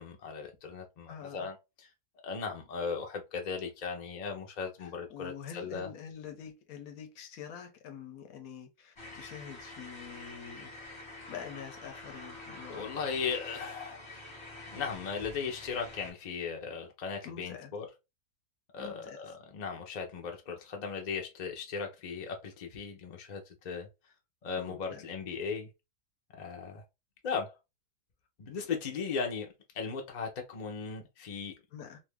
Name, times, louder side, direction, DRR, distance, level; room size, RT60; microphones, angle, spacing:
voice 1, 0.0-1.6 2.2-5.9 12.7-14.2 14.7-17.9 18.7-23.9 24.4-25.7 26.3-26.8 27.2-27.5 28.4-29.5 29.7-31.5, left 5 dB, 45° left, 0.6 m, -37 dB
voice 2, 1.1-1.5 4.8-10.7 11.3-12.9 17.2-17.7 18.8-19.3 24.6-25.1 31.7-32.0, left 8 dB, 75° left, 1.1 m, -46 dB
sound 1, 9.0-16.1, left 2 dB, 20° left, 1.0 m, -47 dB
2.7 x 2.6 x 3.3 m
omnidirectional pair, 1.6 m